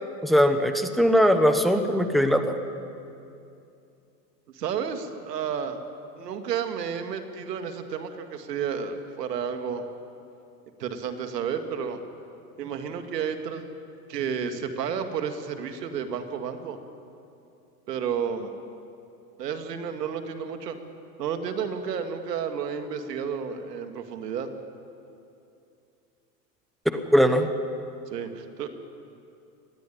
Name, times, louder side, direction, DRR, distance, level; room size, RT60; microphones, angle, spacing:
voice 1, 0.2-2.6 26.9-27.5, equal, ahead, 7 dB, 0.8 m, -20 dB
voice 2, 4.5-5.8 6.2-9.8 10.8-12.0 12.6-13.7 14.1-16.8 17.9-18.5 19.4-20.8 21.2-24.5 28.1-28.7, right 7 dB, 85° right, 7 dB, 2.1 m, -31 dB
20.5 x 13.0 x 10.0 m, 2.6 s
supercardioid pair, 130°, 48 cm